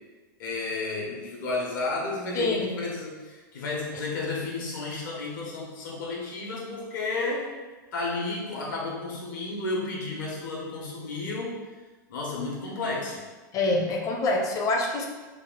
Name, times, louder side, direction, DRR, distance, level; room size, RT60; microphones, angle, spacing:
voice 1, 0.4-7.5 7.9-11.6 12.1-13.2, left 3 dB, 70° left, -3 dB, 1.3 m, -32 dB
voice 2, 2.3-2.8 13.5-15.1, left 2 dB, 30° left, 2 dB, 0.6 m, -26 dB
3.4 x 2.6 x 3.8 m, 1.3 s
hypercardioid pair, 130°, 11 cm